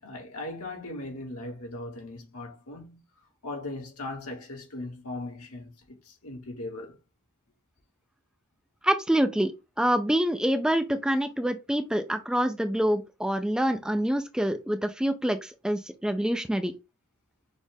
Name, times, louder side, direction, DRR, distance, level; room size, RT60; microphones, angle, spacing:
voice 1, 0.0-3.0 3.4-6.9, left 2 dB, 75° left, 1.9 m, -38 dB
voice 2, 8.8-9.5 9.8-16.7, right 1 dB, 5° right, 0.4 m, -26 dB
6.2 x 2.5 x 3.5 m
head